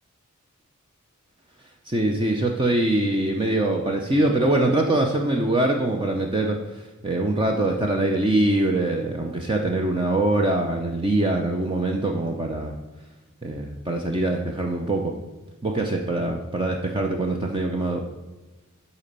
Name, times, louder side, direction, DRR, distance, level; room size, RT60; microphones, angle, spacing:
voice 1, 1.9-12.8 13.4-15.1 15.6-18.0, right 2 dB, 25° right, 2 dB, 0.7 m, -23 dB
11.0 x 4.2 x 6.7 m, 1.2 s
head